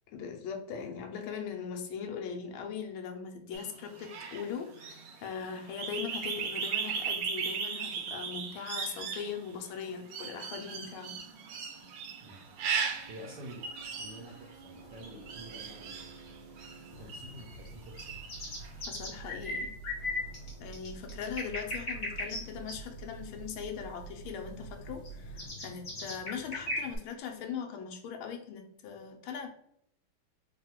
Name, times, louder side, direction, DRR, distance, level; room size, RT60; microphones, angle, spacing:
voice 1, 0.1-11.2 18.9-19.7 20.6-29.5, left 7 dB, 80° left, 4 dB, 1.5 m, -40 dB
sound 1, 3.5-17.6 17.9-18.7, right 6 dB, 90° right, 1.6 m, -37 dB
sound 2, 10.1-25.5, right 5 dB, 60° left, 1.6 m, -50 dB
voice 2, 12.2-12.5 13.1-16.2 16.9-18.2, right 1 dB, 65° right, -1 dB, 1.1 m, -49 dB
sound 3, 16.9-27.0, left 2 dB, 40° left, 1.4 m, -39 dB
3.7 x 2.2 x 4.3 m, 0.72 s
omnidirectional pair, 2.4 m